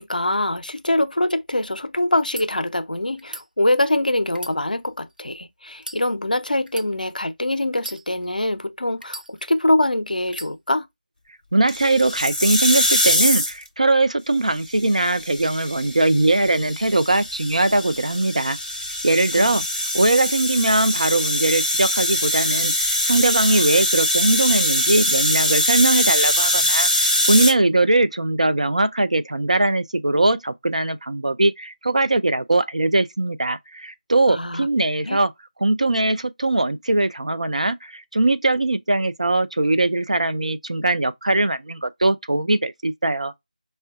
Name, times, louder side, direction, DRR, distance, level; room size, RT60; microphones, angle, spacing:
voice 1, 0.0-10.9 19.4-19.6 34.3-34.7 35.0-35.2, left 1 dB, 80° left, 0.4 m, -23 dB
sound 1, 2.2-2.5 3.2-3.5 4.3-5.2 5.8-6.0 6.7-6.9 7.7-8.4 9.0-9.7 10.3-10.5, right 1 dB, 90° right, 0.7 m, -37 dB
voice 2, 11.5-18.6 19.0-19.6 19.9-35.3 35.6-43.3, right 2 dB, 55° right, 0.3 m, -20 dB
sound 2, 11.7-13.7 14.7-27.5, left 1 dB, 5° left, 0.5 m, -23 dB
4.4 x 2.2 x 2.2 m
figure-of-eight pair, 170°, 5 cm